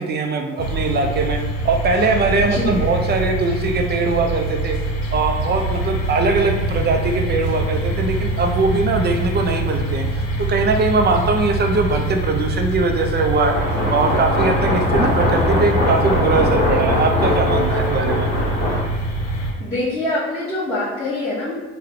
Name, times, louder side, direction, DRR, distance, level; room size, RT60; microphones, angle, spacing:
voice 1, 0.0-4.8 5.1-10.1 10.4-18.3, right 3 dB, 35° right, 4 dB, 0.5 m, -21 dB
sound 1, 0.6-19.5, right 1 dB, 60° left, 0.8 m, -24 dB
voice 2, 2.5-2.9 19.6-21.5, left 1 dB, 10° left, -13 dB, 1.4 m, -24 dB
sound 2, 13.5-18.8, left 1 dB, 30° left, 1.3 m, -21 dB
3.5 x 2.2 x 3.5 m, 1.2 s
cardioid pair, 90°, 30 cm